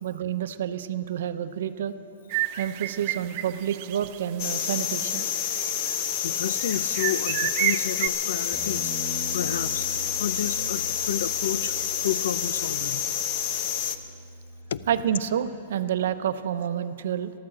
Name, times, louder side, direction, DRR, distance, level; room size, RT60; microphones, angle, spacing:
voice 1, 0.0-1.9 2.6-5.3 14.9-17.3, right 9 dB, 70° right, 12 dB, 0.7 m, -29 dB
sound 1, 2.3-4.2 4.6-4.7 5.2-6.0 6.6-8.1, right 15 dB, 40° right, 0.4 m, -30 dB
sound 2, 4.4-14.0, left 8 dB, 35° left, 0.7 m, -28 dB
voice 2, 6.2-9.9 10.2-11.8 12.0-13.0 14.7-14.9, left 9 dB, 80° left, 16 dB, 0.5 m, -31 dB
Bass guitar, 8.5-14.8, left 1 dB, 5° right, 1.8 m, -41 dB
13.5 x 12.5 x 7.5 m, 2.8 s
hypercardioid pair, 160°, 0 cm